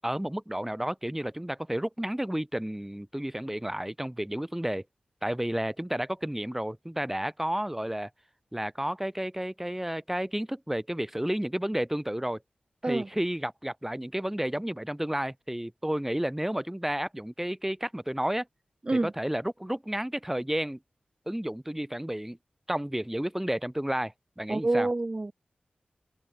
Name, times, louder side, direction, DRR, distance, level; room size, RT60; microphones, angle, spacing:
voice 1, 0.0-4.8 5.2-8.1 8.5-12.4 12.8-18.5 18.9-20.8 21.3-22.4 22.7-24.9, right 1 dB, 10° right, 8.0 m, -31 dB
voice 2, 24.5-25.3, right 2 dB, 30° right, 2.3 m, -27 dB
cardioid pair, 60°, 3 cm